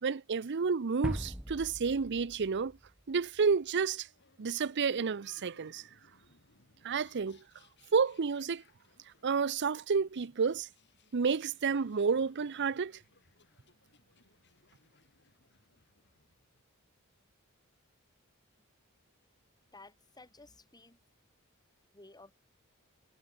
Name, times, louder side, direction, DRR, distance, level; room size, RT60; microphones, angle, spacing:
voice 1, 0.0-2.8 3.1-4.1 4.4-5.9 6.8-7.4 7.9-8.6 9.2-10.7 11.1-13.0, right 5 dB, 55° right, 0.6 m, -30 dB
sound 1, 1.0-3.5, equal, 5° right, 0.8 m, -40 dB
sound 2, 3.9-16.6, left 3 dB, 55° left, 6.0 m, -68 dB
voice 2, 19.7-21.0 21.9-22.3, left 2 dB, 20° left, 7.8 m, -55 dB
head